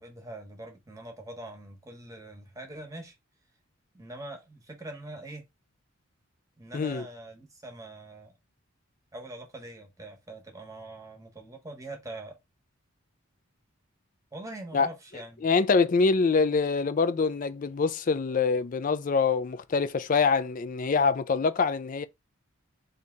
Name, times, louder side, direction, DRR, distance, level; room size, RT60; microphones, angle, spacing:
voice 1, 0.0-3.2 3.9-5.4 6.6-8.3 9.1-12.4 14.3-15.5, right 2 dB, 15° right, 1.0 m, -43 dB
voice 2, 6.7-7.0 14.7-14.9 15.4-22.1, left 4 dB, 40° left, 0.3 m, -25 dB
3.3 x 2.7 x 3.7 m
head